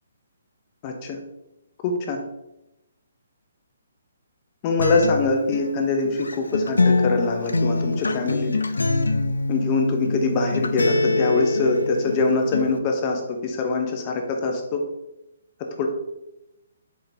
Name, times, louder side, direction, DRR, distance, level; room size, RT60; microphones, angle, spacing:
voice 1, 0.8-1.2 1.8-2.2 4.6-8.5 9.5-14.8 15.8-15.9, left 3 dB, 35° left, 3 dB, 0.6 m, -23 dB
Acoustic guitar, 4.8-12.8, left 3 dB, 85° left, 0.3 m, -24 dB
4.6 x 3.8 x 2.7 m, 0.91 s
hypercardioid pair, 140°, 0 cm